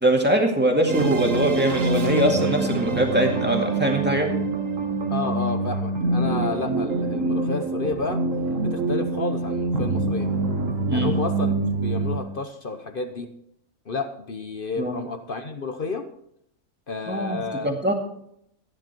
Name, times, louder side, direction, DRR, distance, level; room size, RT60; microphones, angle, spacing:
voice 1, 0.0-4.3 10.9-11.1 14.8-15.0 17.1-17.9, right 1 dB, 5° right, 1 dB, 2.1 m, -22 dB
sound 1, 0.9-12.2, right 2 dB, 55° right, 1.7 m, -25 dB
voice 2, 5.1-8.2 8.6-10.3 10.9-13.3 13.9-16.1 16.9-17.7, left 4 dB, 45° left, 7 dB, 0.9 m, -31 dB
14.0 x 10.5 x 4.5 m, 0.73 s
omnidirectional pair, 1.6 m